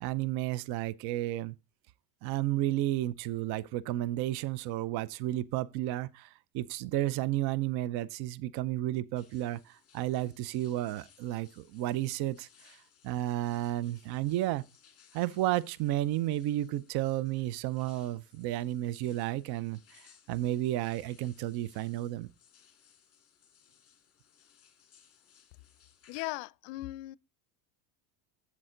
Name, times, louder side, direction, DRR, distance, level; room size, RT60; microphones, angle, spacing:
voice 1, 0.0-1.6 2.2-12.8 13.0-14.6 15.1-22.3, right 14 dB, 55° right, 0.6 m, -32 dB
sound 1, 9.2-26.3, left 8 dB, 30° left, 2.1 m, -63 dB
voice 2, 26.1-27.2, left 20 dB, 70° left, 0.5 m, -38 dB
7.9 x 7.5 x 3.8 m
supercardioid pair, 115°, 45 cm